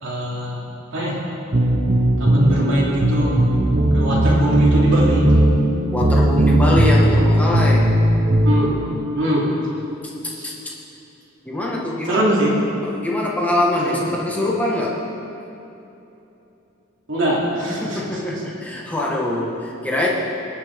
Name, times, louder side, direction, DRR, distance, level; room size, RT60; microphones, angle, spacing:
voice 1, 0.0-0.7 0.9-1.2 2.2-3.4 3.9-5.3 8.4-8.8 9.2-9.5 10.3-10.5 12.0-12.6 13.8-14.0 17.1-18.0 20.0-20.1, right 1 dB, 60° right, -6 dB, 2.8 m, -21 dB
sound 1, 1.5-8.9, right 1 dB, 40° right, 0.9 m, -17 dB
voice 2, 5.9-7.9 9.4-9.5 10.4-10.5 11.4-12.2 12.8-15.0 17.8-20.1, left 1 dB, 5° left, -4 dB, 1.6 m, -23 dB
21.0 x 7.4 x 3.7 m, 2.9 s
head